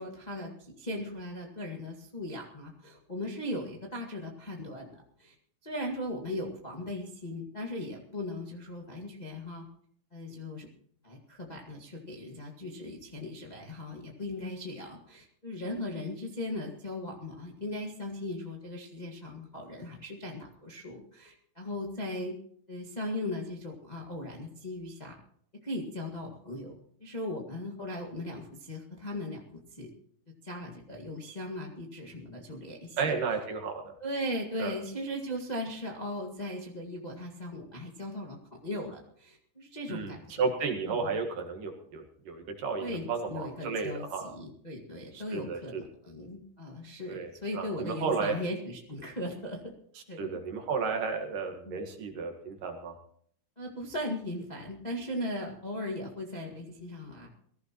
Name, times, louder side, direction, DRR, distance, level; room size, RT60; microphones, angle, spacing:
voice 1, 0.0-5.3 5.6-9.6 10.1-10.7 11.0-22.4 22.7-25.2 25.6-29.4 29.7-29.9 30.4-33.1 34.0-40.5 40.8-41.2 42.8-49.7 50.1-50.3 51.6-51.8 53.6-57.3, left 1 dB, 25° left, -1 dB, 0.9 m, -38 dB
voice 2, 33.0-34.0 34.6-34.7 39.9-40.1 40.4-44.3 45.1-45.8 47.1-48.4 50.2-52.9, right 5 dB, 65° right, 3 dB, 3.1 m, -33 dB
22.5 x 15.0 x 3.0 m, 0.64 s
omnidirectional pair, 4.2 m